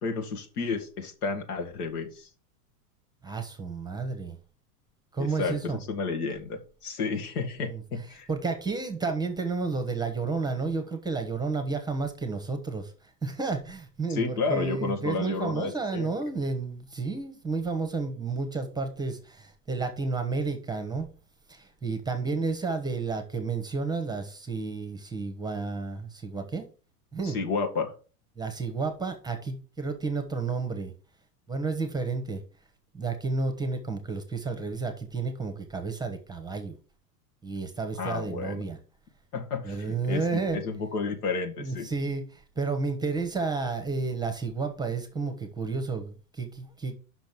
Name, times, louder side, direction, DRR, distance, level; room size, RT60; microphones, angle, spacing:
voice 1, 0.0-2.3 5.2-8.3 14.1-16.1 27.2-27.9 38.0-38.6 39.3-41.9, left 4 dB, 75° left, 2.0 m, -31 dB
voice 2, 3.2-4.4 5.1-5.8 7.6-7.8 8.3-21.1 21.5-26.7 27.1-27.4 28.4-30.9 31.5-32.4 32.9-36.8 37.4-38.8 39.6-40.6 41.6-46.9, right 4 dB, 10° right, 1.1 m, -31 dB
5.9 x 5.2 x 6.1 m
hypercardioid pair, 120°, 45 cm